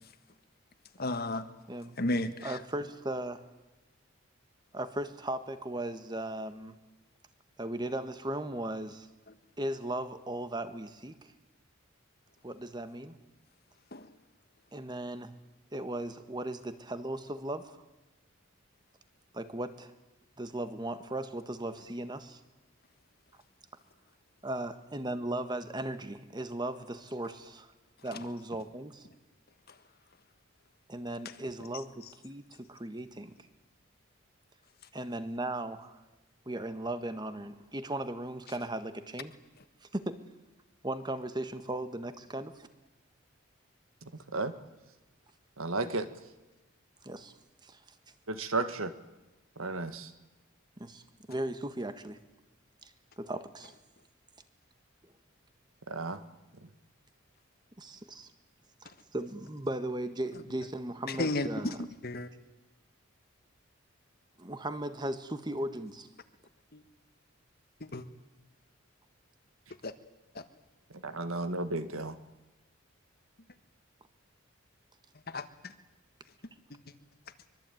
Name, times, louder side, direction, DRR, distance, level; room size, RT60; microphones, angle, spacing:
voice 1, 1.0-1.5 2.0-2.6 13.9-14.1 61.1-62.3 66.7-66.8 67.8-68.0 69.8-69.9 70.3-70.4 75.3-75.7 76.7-76.8, left 2 dB, 45° left, 11 dB, 1.6 m, -33 dB
voice 2, 2.4-3.4 4.7-6.7 7.6-9.1 9.6-11.1 12.4-13.2 14.7-15.3 15.7-17.8 19.3-19.9 20.4-22.4 24.4-27.7 28.0-29.1 30.9-33.3 34.9-36.0 36.4-39.3 39.9-40.2 40.8-42.7 47.0-47.3 47.6-47.8 50.8-51.0 51.3-52.2 52.8-52.9 53.2-53.7 57.8-58.3 58.8-61.8 64.4-66.1, right 1 dB, 20° right, 11 dB, 1.5 m, -37 dB
voice 3, 45.6-46.1 48.3-48.9 49.6-50.1 55.9-56.2 71.0-72.2, right 3 dB, 80° right, 11 dB, 1.8 m, -33 dB
24.5 x 23.0 x 9.3 m, 1.1 s
head